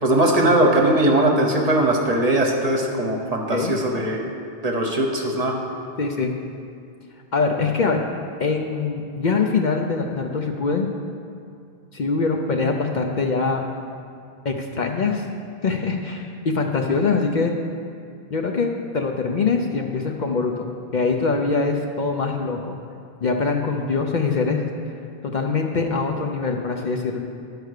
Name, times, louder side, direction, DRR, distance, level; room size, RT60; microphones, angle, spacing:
voice 1, 0.0-4.2 4.6-5.5, right 1 dB, 40° right, 1 dB, 1.0 m, -20 dB
voice 2, 6.0-6.3 7.3-8.0 8.4-10.9 11.9-13.6 14.4-15.2 15.6-17.5 18.3-20.7 20.9-22.8 23.2-24.7 25.2-27.2, left 4 dB, 55° left, 2 dB, 0.7 m, -23 dB
10.5 x 4.8 x 6.5 m, 2.4 s
omnidirectional pair, 1.0 m